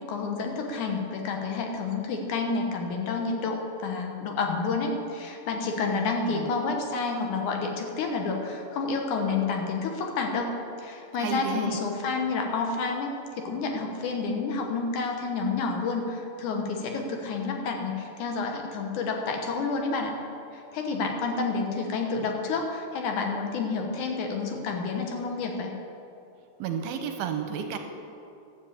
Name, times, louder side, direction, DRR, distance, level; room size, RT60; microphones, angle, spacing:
voice 1, 0.1-20.1 20.5-25.7, left 4 dB, 65° left, 3 dB, 2.2 m, -29 dB
voice 2, 5.9-6.5 11.2-11.8 26.6-27.8, right 7 dB, 80° right, 6 dB, 2.3 m, -32 dB
12.5 x 8.3 x 8.2 m, 2.8 s
omnidirectional pair, 4.6 m